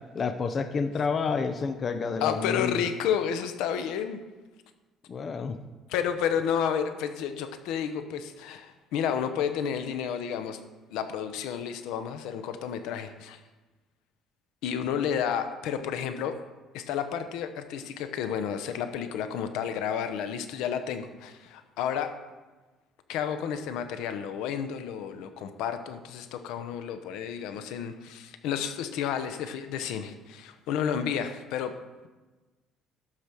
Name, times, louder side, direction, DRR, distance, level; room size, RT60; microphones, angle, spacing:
voice 1, 0.1-2.8 5.1-5.6, left 5 dB, 30° left, 9 dB, 0.6 m, -29 dB
voice 2, 2.2-4.2 5.9-10.6 10.9-13.4 14.6-16.4 16.7-22.2 23.1-31.8, left 8 dB, 85° left, 9 dB, 0.9 m, -31 dB
12.5 x 5.0 x 6.2 m, 1.2 s
cardioid pair, 165°, 0 cm